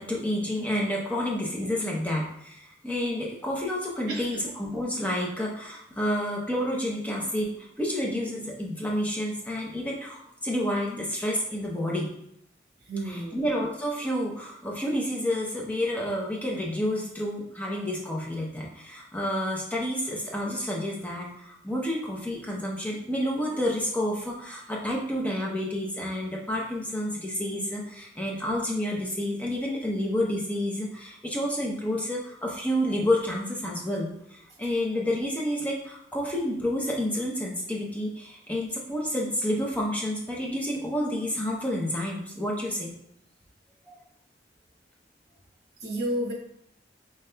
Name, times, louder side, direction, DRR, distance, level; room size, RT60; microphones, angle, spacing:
voice 1, 0.0-12.1 13.1-42.9 43.9-44.0, left 1 dB, 10° left, -3 dB, 0.6 m, -29 dB
voice 2, 4.1-4.4 12.9-13.5 45.8-46.3, right 1 dB, 55° right, -2 dB, 1.2 m, -31 dB
5.2 x 3.2 x 2.2 m, 0.75 s
head